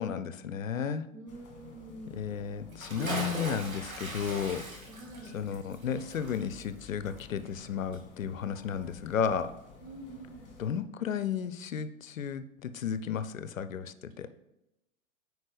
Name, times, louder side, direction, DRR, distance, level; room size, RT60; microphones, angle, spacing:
voice 1, 0.0-1.0 2.1-4.6 5.3-9.5 10.6-14.3, left 7 dB, 75° left, 13 dB, 0.6 m, -33 dB
voice 2, 1.1-2.2 4.9-5.4 9.8-10.5 14.2-14.3, right 2 dB, 70° right, 1 dB, 2.0 m, -46 dB
sound 1, 1.3-10.8, left 5 dB, 25° left, 1.8 m, -52 dB
Bathtub (filling or washing) / Splash splatter, 2.7-7.7 7.9-8.0, right 2 dB, 85° right, 1.7 m, -39 dB
9.5 x 4.6 x 3.3 m, 0.91 s
figure-of-eight pair, 95°, 40 cm